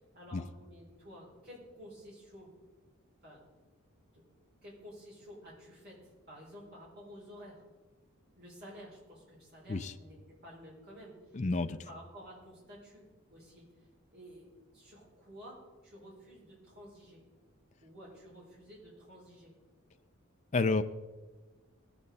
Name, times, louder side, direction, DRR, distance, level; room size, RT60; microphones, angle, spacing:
voice 1, 0.1-2.5 3.2-3.5 4.1-4.2 4.6-7.6 8.4-13.6 14.1-17.2 17.8-19.5, equal, 45° right, -6 dB, 5.2 m, -52 dB
voice 2, 11.3-11.8 20.5-20.8, left 3 dB, 35° left, 8 dB, 0.4 m, -29 dB
18.5 x 8.7 x 4.1 m, 1.2 s
head